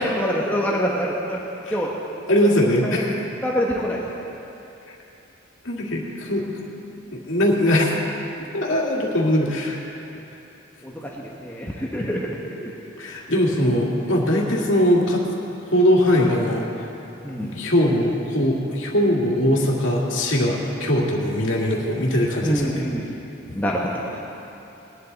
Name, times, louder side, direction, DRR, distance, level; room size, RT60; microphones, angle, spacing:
voice 1, 0.0-1.4 1.7-2.0 2.8-3.0 3.4-4.0 10.8-10.9 11.2-12.4 12.6-12.7 17.2-17.6 22.4-23.1 23.5-24.2, equal, 10° left, -3 dB, 1.0 m, -25 dB
voice 2, 2.3-3.2 5.6-6.5 7.1-7.9 8.5-9.8 12.0-12.2 13.0-15.2 15.6-16.9 17.5-22.7 23.5-23.6, left 1 dB, 75° left, -3 dB, 2.2 m, -21 dB
20.0 x 11.0 x 4.1 m, 2.9 s
head